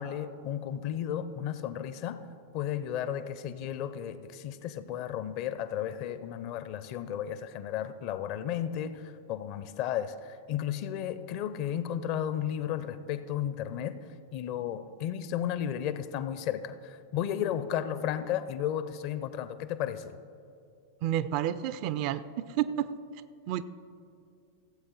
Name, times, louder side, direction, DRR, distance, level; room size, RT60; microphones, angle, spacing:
voice 1, 0.0-2.2 2.5-20.2, left 10 dB, 45° left, 13 dB, 0.6 m, -34 dB
voice 2, 21.0-22.9 23.5-23.6, right 11 dB, 45° right, 14 dB, 0.4 m, -30 dB
16.0 x 7.9 x 3.9 m, 2.5 s
figure-of-eight pair, 90°, 0 cm